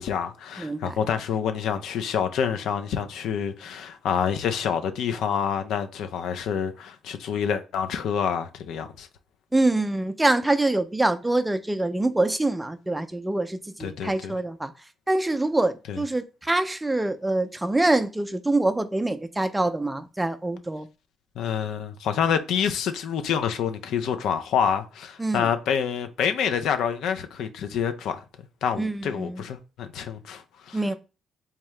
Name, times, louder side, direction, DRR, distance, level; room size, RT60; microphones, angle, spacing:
voice 1, 0.0-9.1 13.8-14.3 15.9-16.0 21.4-28.2 28.6-30.8, left 7 dB, 80° left, 0.5 m, -27 dB
voice 2, 0.6-1.0 9.5-14.7 15.1-20.9 25.2-25.5 28.8-29.4 30.7-30.9, right 2 dB, 10° right, 0.4 m, -25 dB
3.6 x 2.8 x 3.2 m
cardioid pair, 90°, 0 cm